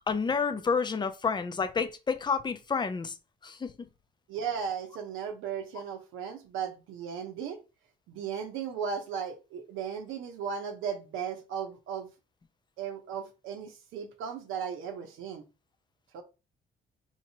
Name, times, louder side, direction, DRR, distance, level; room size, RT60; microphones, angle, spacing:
voice 1, 0.1-3.2 3.4-3.7, left 5 dB, 20° left, 0.5 m, -29 dB
voice 2, 4.3-7.6 8.1-12.1 12.8-15.4 16.1-16.2, right 7 dB, 90° right, 0.8 m, -36 dB
4.5 x 2.8 x 2.9 m
cardioid pair, 90°, 20 cm